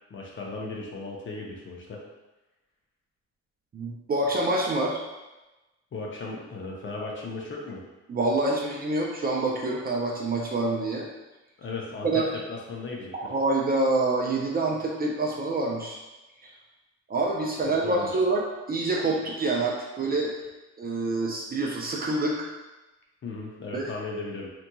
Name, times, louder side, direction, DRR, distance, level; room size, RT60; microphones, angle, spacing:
voice 1, 0.1-2.0 5.9-7.8 11.6-13.3 17.6-18.2 23.2-24.5, left 3 dB, 40° left, -2 dB, 0.6 m, -36 dB
voice 2, 3.7-5.0 8.1-11.1 12.0-12.3 13.1-16.0 16.4-16.5 17.1-20.3 20.8-22.5 23.7-23.9, right 2 dB, 30° right, -1 dB, 0.4 m, -26 dB
2.9 x 2.5 x 2.2 m, 1.1 s
cardioid pair, 90°, 30 cm